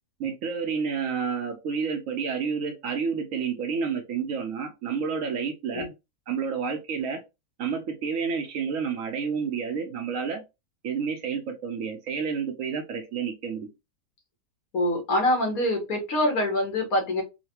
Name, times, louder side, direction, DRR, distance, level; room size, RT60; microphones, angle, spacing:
voice 1, 0.2-5.9 6.3-7.2 7.6-10.4 10.8-13.7, right 6 dB, 65° right, 6 dB, 0.9 m, -30 dB
voice 2, 14.7-17.2, left 1 dB, 65° left, 2 dB, 1.6 m, -25 dB
3.9 x 2.1 x 2.8 m, 0.24 s
omnidirectional pair, 1.7 m